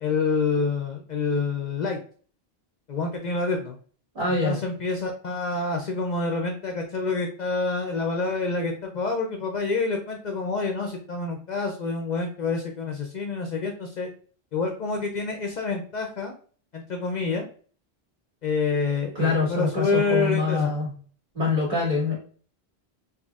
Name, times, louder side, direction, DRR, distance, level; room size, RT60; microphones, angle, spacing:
voice 1, 0.0-2.0 2.9-3.8 4.4-14.1 14.5-16.4 16.7-17.4 18.4-20.7, left 4 dB, 55° left, 3 dB, 0.5 m, -27 dB
voice 2, 4.2-4.6 19.2-20.9 21.3-22.2, left 3 dB, 65° right, -5 dB, 2.1 m, -24 dB
4.0 x 2.8 x 2.3 m, 0.43 s
omnidirectional pair, 1.0 m